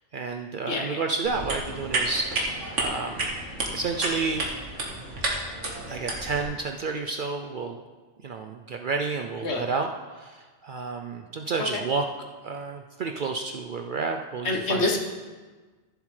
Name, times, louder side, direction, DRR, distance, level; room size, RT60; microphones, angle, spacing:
voice 1, 0.1-2.3 2.8-3.3 3.7-4.5 5.9-7.8 8.2-9.9 10.1-12.0 12.4-14.8, right 4 dB, 60° right, 4 dB, 0.6 m, -30 dB
voice 2, 0.7-1.0 9.4-9.6 11.6-11.8 14.4-15.0, left 2 dB, 65° left, 2 dB, 1.3 m, -26 dB
sound 1, 1.2-6.4, right 2 dB, 80° right, 1.8 m, -31 dB
14.0 x 7.3 x 3.2 m, 1.4 s
omnidirectional pair, 1.2 m